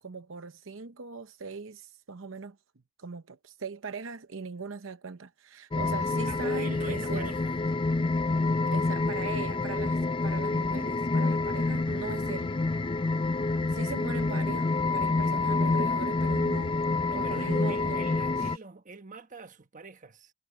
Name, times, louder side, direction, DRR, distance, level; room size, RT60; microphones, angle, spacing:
voice 1, 0.0-2.6 3.0-7.4 8.6-12.5 13.7-16.8 17.1-18.1, right 5 dB, 70° right, 0.8 m, -40 dB
sound 1, 5.7-18.6, left 3 dB, 25° left, 0.4 m, -28 dB
voice 2, 6.3-7.6 17.1-20.3, right 4 dB, 40° right, 1.3 m, -44 dB
head